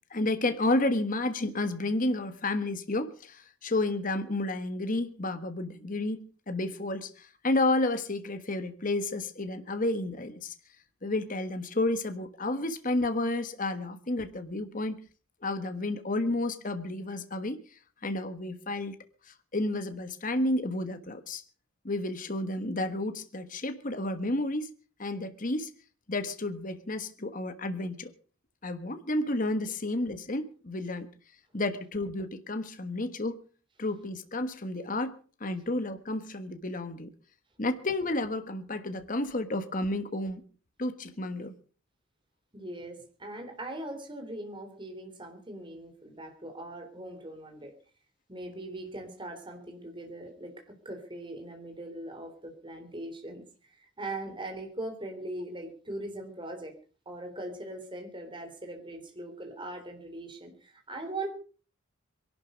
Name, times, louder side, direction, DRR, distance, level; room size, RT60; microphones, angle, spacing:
voice 1, 0.1-10.5 11.0-15.0 15.4-19.0 19.2-21.4 21.8-24.7 25.0-25.7 26.1-28.1 28.6-31.1 31.5-33.4 33.8-37.1 37.6-40.4 40.8-41.5, left 2 dB, 40° left, 1.4 m, -31 dB
voice 2, 42.5-47.8 48.3-56.7 57.1-61.3, right 1 dB, 25° right, 3.6 m, -40 dB
23.0 x 12.0 x 5.2 m
head